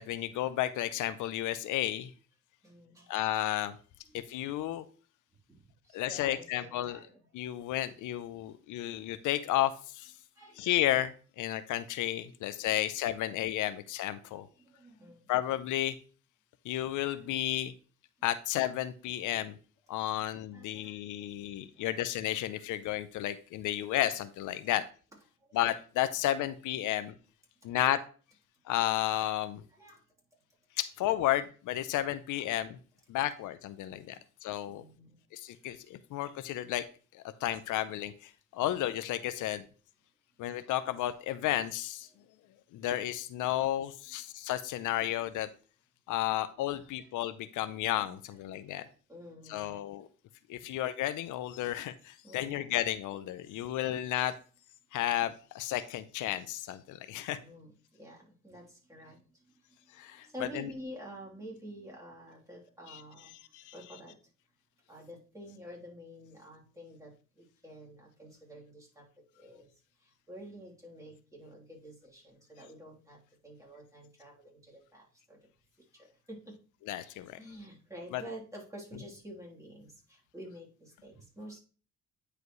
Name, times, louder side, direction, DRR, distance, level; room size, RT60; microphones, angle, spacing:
voice 1, 0.0-2.1 3.1-3.8 4.1-4.8 5.9-7.0 7.3-10.1 10.6-14.5 15.3-16.0 16.6-17.7 18.2-19.6 19.9-24.8 25.5-27.1 27.6-28.0 28.7-29.6 30.8-32.8 33.1-34.2 34.4-34.8 35.3-36.8 37.1-39.6 40.4-42.1 42.7-45.5 46.1-48.9 49.5-50.1 50.5-54.3 54.9-57.4 60.0-60.3 60.5-60.7 62.9-63.0 63.5-63.7 76.9-77.4 78.1-78.2, left 13 dB, 85° left, 13 dB, 0.6 m, -32 dB
voice 2, 2.6-3.3 5.5-7.3 10.3-10.6 12.6-12.8 13.6-13.7 14.2-15.4 17.1-17.2 20.2-20.3 20.5-21.3 21.7-21.9 24.6-24.8 25.4-25.6 29.7-30.0 34.7-35.2 42.1-42.2 48.7-49.8 52.2-52.7 53.4-53.7 57.3-59.9 60.2-64.2 64.9-69.7 70.0-75.4 75.9-76.6 77.3-81.6, equal, 10° right, -3 dB, 3.2 m, -49 dB
9.6 x 4.9 x 3.1 m, 0.38 s
cardioid pair, 90°, 30 cm